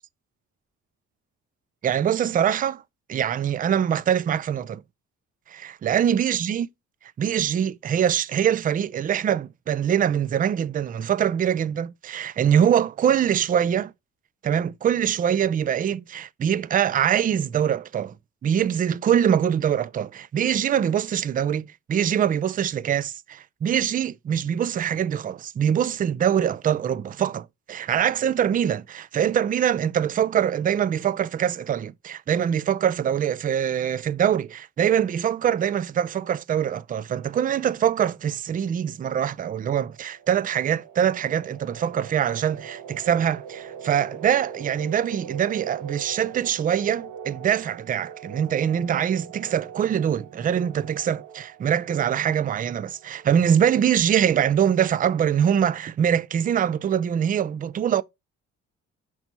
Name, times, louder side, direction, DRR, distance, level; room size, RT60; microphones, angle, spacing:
voice 1, 1.8-2.8 3.1-4.8 5.5-6.7 7.2-13.9 14.4-18.1 18.4-58.0, right 9 dB, 30° right, 0.3 m, -23 dB
sound 1, 39.6-54.0, right 7 dB, 80° right, 1.5 m, -42 dB
5.8 x 3.0 x 5.3 m
cardioid pair, 90°, 30 cm